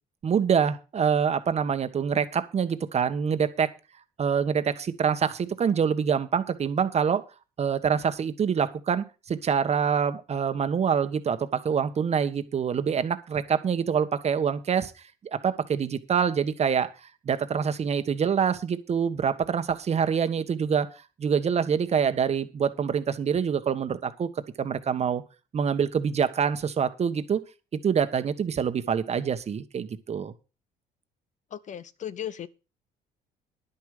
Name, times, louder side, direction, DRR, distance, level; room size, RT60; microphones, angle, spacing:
voice 1, 0.2-3.7 4.2-7.2 7.6-14.9 15.4-16.9 17.2-20.9 21.2-24.3 24.6-25.2 25.5-27.4 27.8-30.3, right 7 dB, 40° right, 1.4 m, -25 dB
voice 2, 31.5-32.5, left 10 dB, 45° left, 0.8 m, -36 dB
11.0 x 9.8 x 5.0 m
cardioid pair, 110°, 17 cm